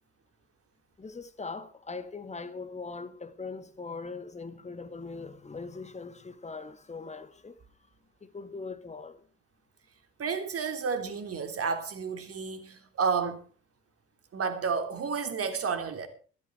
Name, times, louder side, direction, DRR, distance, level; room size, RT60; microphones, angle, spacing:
voice 1, 1.0-7.6 8.2-9.2, left 4 dB, 20° left, 2.0 m, -41 dB
voice 2, 10.2-13.4 14.3-16.1, right 5 dB, 45° right, 3.1 m, -31 dB
16.0 x 13.0 x 4.6 m
figure-of-eight pair, 50°, 33 cm